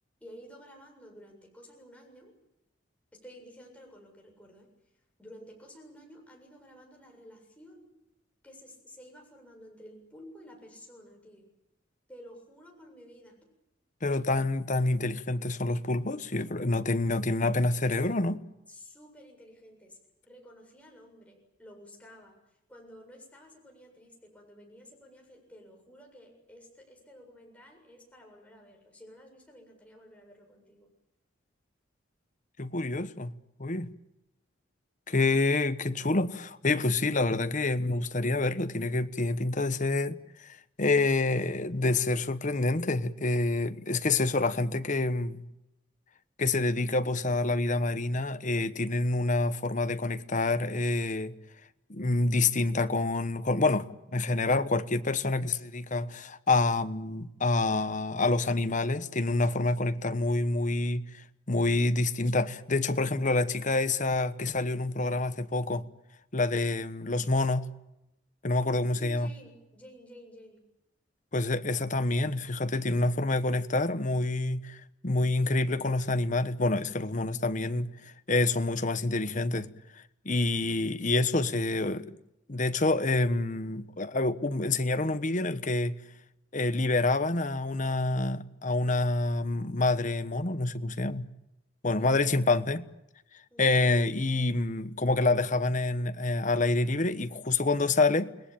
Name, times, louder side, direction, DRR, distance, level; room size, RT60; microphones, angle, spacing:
voice 1, 0.2-2.3 3.1-4.7 5.2-7.9 8.4-11.5 12.1-13.4 18.7-20.0 20.2-30.9 69.0-70.6 92.0-92.2 93.5-93.8, equal, 5° left, 7.5 m, -52 dB
voice 2, 14.0-18.4 32.6-33.3 33.6-33.9 35.1-40.2 40.8-45.5 46.4-51.3 51.9-61.2 61.5-65.8 66.3-67.7 68.4-69.3 71.3-74.8 75.0-79.7 80.2-82.2 82.5-86.0 86.5-91.3 91.8-92.9 93.6-98.3, left 2 dB, 40° left, 1.1 m, -27 dB
29.5 x 20.5 x 8.8 m
head